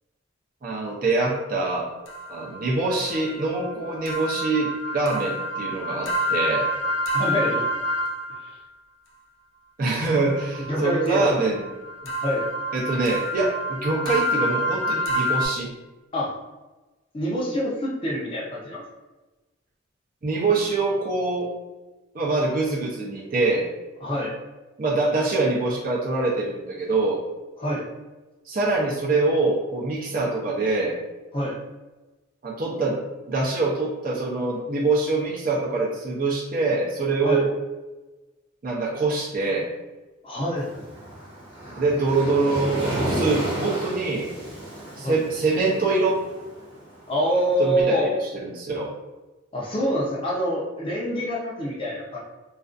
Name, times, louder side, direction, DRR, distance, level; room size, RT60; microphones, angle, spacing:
voice 1, 0.6-1.9 2.3-6.7 9.8-11.7 12.7-15.7 20.2-21.5 22.1-23.7 24.8-27.2 28.5-31.0 32.4-33.0 33.3-37.5 38.6-39.7 41.8-44.3 45.0-46.2 47.6-48.9, right 3 dB, 45° right, -3 dB, 0.4 m, -24 dB
sound 1, 2.1-8.5 10.1-15.5, equal, 80° left, 0.5 m, -28 dB
voice 2, 7.1-7.6 10.6-11.3 12.0-12.4 16.1-16.4 17.1-18.8 24.0-24.3 27.6-27.8 31.3-31.6 37.2-37.4 40.2-40.8 45.0-45.2 47.1-48.2 49.5-52.2, equal, 25° left, -4 dB, 0.5 m, -26 dB
Waves surf, 40.6-47.7, right 1 dB, 25° right, 0.8 m, -32 dB
2.4 x 2.2 x 2.4 m, 1.1 s
head